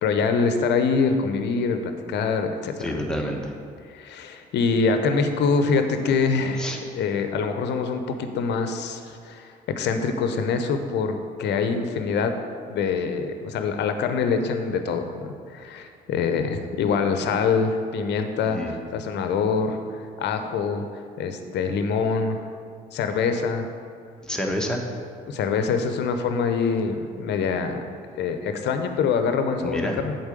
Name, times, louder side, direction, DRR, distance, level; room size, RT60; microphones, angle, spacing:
voice 1, 0.0-3.0 3.9-12.3 12.7-20.8 21.2-22.4 22.9-23.7 25.3-27.8 28.2-30.2, left 5 dB, 60° left, 7 dB, 0.8 m, -25 dB
voice 2, 2.8-3.5 6.6-6.8 18.4-18.7 24.2-24.8 29.6-29.9, equal, 5° left, 0 dB, 1.4 m, -28 dB
8.1 x 4.2 x 6.7 m, 2.2 s
hypercardioid pair, 55°, 20 cm